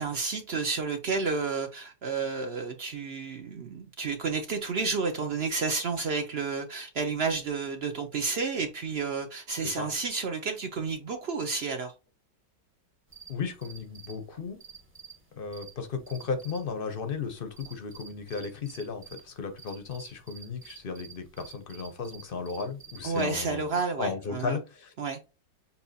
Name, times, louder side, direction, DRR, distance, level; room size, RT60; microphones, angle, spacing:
voice 1, 0.0-11.9 23.0-24.6 25.0-25.2, right 4 dB, 70° right, 0.6 m, -31 dB
sound 1, 13.1-23.3, right 6 dB, 10° right, 0.7 m, -51 dB
voice 2, 13.3-14.6 15.3-24.9, left 5 dB, 50° left, 0.6 m, -35 dB
7.0 x 2.8 x 2.7 m
omnidirectional pair, 1.9 m